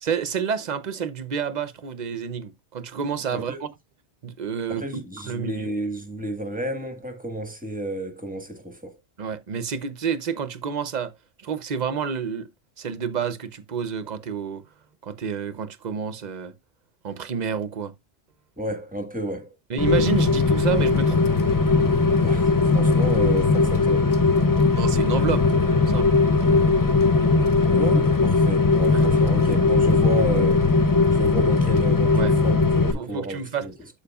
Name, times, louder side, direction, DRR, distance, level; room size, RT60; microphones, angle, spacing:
voice 1, 0.0-3.5 4.2-4.8 5.2-5.7 9.2-11.1 11.4-12.5 12.8-14.6 15.0-16.5 17.0-17.9 19.7-21.3 24.7-25.4 25.9-26.1 28.9-29.0 32.1-32.3 32.9-33.7, right 7 dB, 45° right, 0.7 m, -29 dB
voice 2, 4.7-9.0 18.6-19.5 22.2-24.1 27.7-30.7 31.1-33.7, right 1 dB, 10° right, 1.4 m, -32 dB
Rain, 19.8-32.9, left 3 dB, 30° left, 0.4 m, -19 dB
13.5 x 4.7 x 2.3 m
omnidirectional pair, 1.1 m